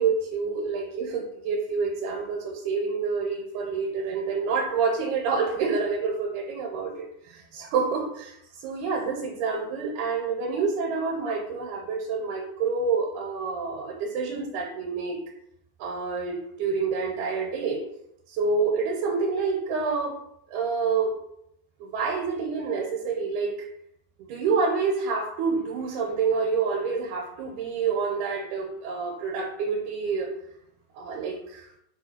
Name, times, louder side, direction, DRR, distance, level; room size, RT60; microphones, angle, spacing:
voice 1, 0.0-15.2 15.8-17.8 18.3-20.2 20.5-21.1 21.8-23.6 24.2-30.3 30.9-31.7, right 5 dB, 80° right, -1 dB, 2.1 m, -28 dB
4.9 x 2.3 x 4.2 m, 0.77 s
omnidirectional pair, 3.6 m